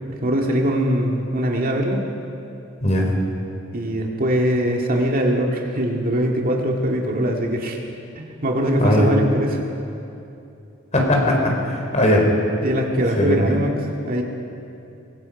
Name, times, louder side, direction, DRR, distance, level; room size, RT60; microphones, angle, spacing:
voice 1, 0.1-2.1 3.7-7.8 8.2-9.6 12.1-12.2 12.6-13.7 14.0-14.2, equal, 45° right, 0 dB, 2.0 m, -22 dB
voice 2, 10.9-12.3 13.2-13.6, left 1 dB, 35° left, 0 dB, 4.2 m, -19 dB
23.5 x 22.0 x 5.3 m, 2.7 s
head